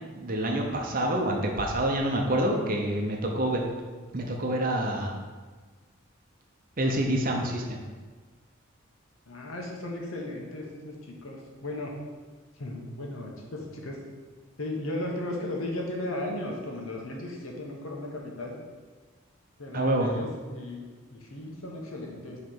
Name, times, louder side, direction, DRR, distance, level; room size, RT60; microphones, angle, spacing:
voice 1, 0.2-3.6 4.1-5.1 6.8-7.8 19.7-20.1, right 1 dB, 40° right, 1 dB, 0.7 m, -27 dB
voice 2, 9.3-11.9 12.6-14.0 14.6-18.6 19.6-20.9 21.1-22.4, left 1 dB, 80° left, 0 dB, 1.1 m, -36 dB
5.3 x 3.2 x 5.6 m, 1.4 s
head